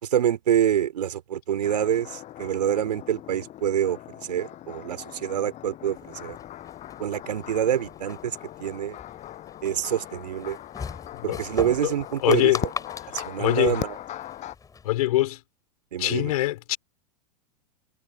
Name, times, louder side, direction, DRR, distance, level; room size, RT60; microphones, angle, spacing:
voice 1, 0.0-6.4 7.0-9.0 9.6-10.6 11.2-12.5 13.1-14.0 15.9-16.3, right 10 dB, 80° right, 4.0 m, -26 dB
sound 1, 1.6-14.6, left 13 dB, 35° left, 7.6 m, -40 dB
sound 2, 5.9-14.9, left 5 dB, 15° left, 5.6 m, -41 dB
voice 2, 11.1-11.5 11.8-11.9 12.2-12.6 13.0-13.8 14.8-15.4 16.0-16.8, left 16 dB, 65° left, 4.2 m, -24 dB
hypercardioid pair, 105°, 21 cm